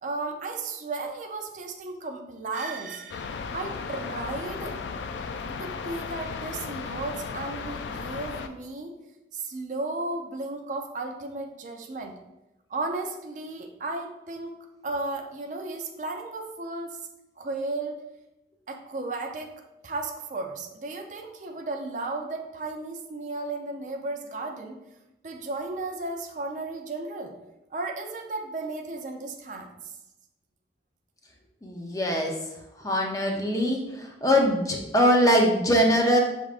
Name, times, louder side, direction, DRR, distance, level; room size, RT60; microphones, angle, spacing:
voice 1, 0.0-4.8 5.6-8.9 9.3-12.1 12.7-14.6 14.8-17.0 17.4-18.0 18.7-19.5 19.8-24.8 25.2-27.4 27.7-29.7, right 2 dB, 45° right, 3 dB, 0.4 m, -34 dB
sound 1, 3.1-8.5, left 5 dB, 80° left, 0.3 m, -35 dB
voice 2, 31.6-32.3 32.8-36.2, equal, 20° left, 0 dB, 0.6 m, -22 dB
6.1 x 3.5 x 2.4 m, 0.94 s
head